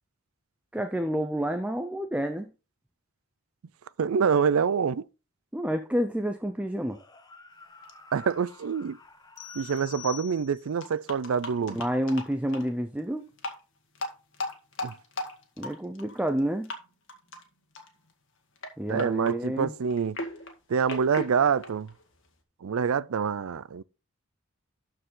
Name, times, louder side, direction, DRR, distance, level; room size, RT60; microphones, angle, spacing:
voice 1, 0.7-2.5 5.5-7.0 11.7-13.2 15.6-16.7 18.8-19.7, equal, 5° right, 0.4 m, -29 dB
voice 2, 4.0-5.1 8.1-9.0 9.5-11.8 14.8-14.9 18.9-20.2 20.7-21.9 22.6-23.8, right 6 dB, 75° right, 0.4 m, -26 dB
sound 1, 6.8-10.2, left 2 dB, 20° left, 1.1 m, -51 dB
sound 2, 7.8-7.9 8.3-8.4 9.4-9.5 9.7-9.8 10.8-12.7 13.3-13.6 14.0-16.4 16.6-16.8 17.1-17.4 17.8-18.1 18.6-22.4, left 2 dB, 60° left, 1.8 m, -38 dB
sound 3, 9.4-10.9, left 15 dB, 80° left, 1.3 m, -44 dB
12.5 x 4.7 x 3.8 m
head